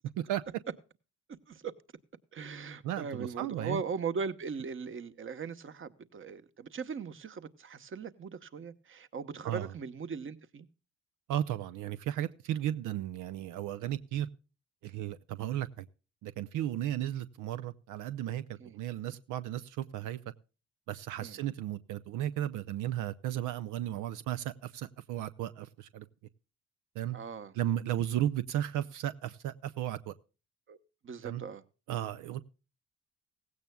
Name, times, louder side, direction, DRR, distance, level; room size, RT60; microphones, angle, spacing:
voice 1, 2.3-10.7 18.6-18.7 21.2-21.4 27.1-27.5 30.7-30.8 31.0-31.6, right 5 dB, 40° right, 1.1 m, -39 dB
voice 2, 2.8-3.8 9.4-9.7 11.3-14.3 14.8-15.9 16.2-20.2 20.9-26.0 27.0-27.2 27.5-30.1 31.2-31.4 31.9-32.4, right 12 dB, 90° right, 0.6 m, -34 dB
16.5 x 16.0 x 2.2 m
cardioid pair, 90°, 30 cm